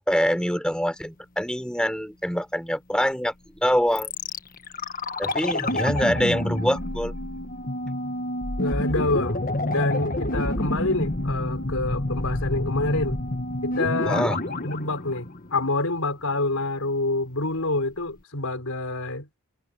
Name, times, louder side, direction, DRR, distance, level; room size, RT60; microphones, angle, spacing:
voice 1, 0.1-3.3 3.6-4.1 5.2-7.1 14.1-14.4, equal, 5° left, 4.6 m, -24 dB
sound 1, 3.9-16.2, left 1 dB, 40° left, 1.5 m, -28 dB
voice 2, 8.6-9.4 9.7-13.2 13.6-14.3 14.6-19.3, left 2 dB, 80° left, 4.5 m, -27 dB
head